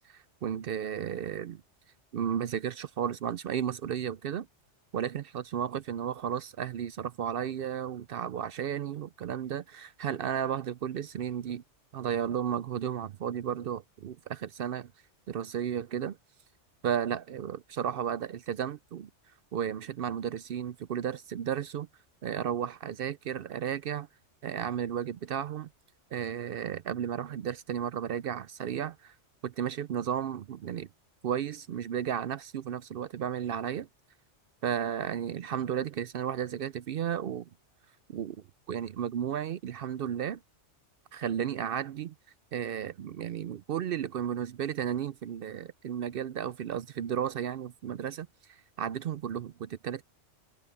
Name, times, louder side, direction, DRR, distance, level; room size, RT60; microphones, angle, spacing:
voice 1, 0.1-1.6 2.1-4.5 4.9-11.6 11.9-14.9 15.3-16.2 16.8-19.1 19.5-21.9 22.2-24.1 24.4-25.7 26.1-29.1 29.4-30.9 31.2-33.9 34.6-37.5 38.1-38.4 38.7-40.4 41.1-42.1 42.5-50.0, right 9 dB, 60° right, 0.6 m, -33 dB
omnidirectional pair, 1.2 m